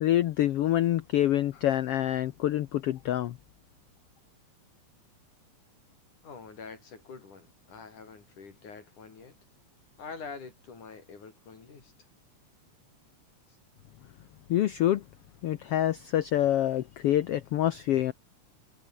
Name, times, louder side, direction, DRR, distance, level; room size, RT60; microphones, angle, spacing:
voice 1, 0.0-3.3 14.5-15.0 15.4-18.1, left 12 dB, 90° left, 1.3 m, -26 dB
voice 2, 6.2-9.4 10.0-11.9 13.5-13.6, left 5 dB, 65° left, 5.7 m, -45 dB
omnidirectional pair, 3.8 m